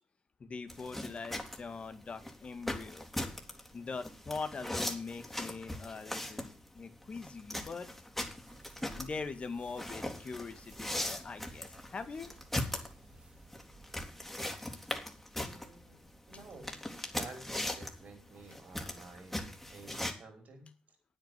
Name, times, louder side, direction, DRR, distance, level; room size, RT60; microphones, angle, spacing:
voice 1, 0.4-3.1 3.7-7.9 9.0-12.3, left 4 dB, 45° left, 9 dB, 2.2 m, -42 dB
sound 1, 0.7-20.1, left 1 dB, 5° left, 3.3 m, -40 dB
sound 2, 8.5-14.1, right 2 dB, 40° right, 2.7 m, -59 dB
voice 2, 15.4-16.0 16.3-16.8 17.1-21.0, right 3 dB, 65° right, 4 dB, 5.3 m, -51 dB
9.2 x 9.0 x 7.8 m, 0.35 s
supercardioid pair, 50°, 3 cm